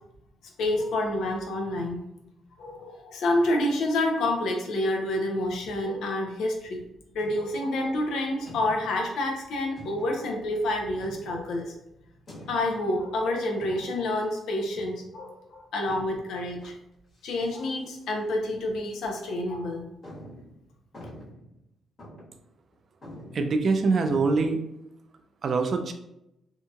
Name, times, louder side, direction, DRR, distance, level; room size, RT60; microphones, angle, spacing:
voice 1, 0.6-2.0 2.6-6.8 7.1-11.7 12.5-16.7 17.2-19.8, left 1 dB, 75° left, 1 dB, 0.6 m, -28 dB
sound 1, 7.2-7.7 8.5-9.1 9.8-10.3 11.0-11.6 12.3-12.9 13.6-14.2 14.7-15.1 15.9-16.7 17.1-17.7 18.0-18.1 18.8-18.9 19.4-19.5 20.0-21.6 22.0-22.4 22.7-22.8 23.0-24.3, equal, 45° left, 1.3 m, -46 dB
voice 2, 23.3-24.6 25.4-25.9, right 4 dB, 50° right, 6 dB, 0.3 m, -24 dB
2.7 x 2.7 x 2.3 m, 0.85 s
cardioid pair, 90°, 0 cm